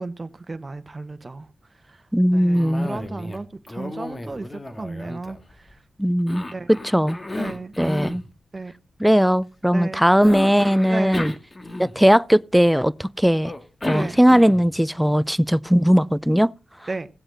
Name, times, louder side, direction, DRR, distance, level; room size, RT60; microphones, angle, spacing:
voice 1, 0.0-1.5 1.9-2.0 2.3-5.8 6.5-6.7 7.3-7.7 8.5-8.7 9.7-10.0 10.9-11.2 13.9-14.2 16.9-17.1, right 3 dB, 40° right, 1.1 m, -33 dB
voice 2, 2.1-2.9 6.0-6.4 6.8-7.2 7.8-8.2 9.0-11.3 11.8-13.5 13.8-16.5, equal, 5° right, 0.5 m, -18 dB
Cough, 2.5-3.4 3.7-5.7 6.3-8.2 10.2-12.2 13.4-14.8, left 2 dB, 35° left, 1.8 m, -33 dB
16.5 x 7.8 x 4.0 m
cardioid pair, 45°, 0 cm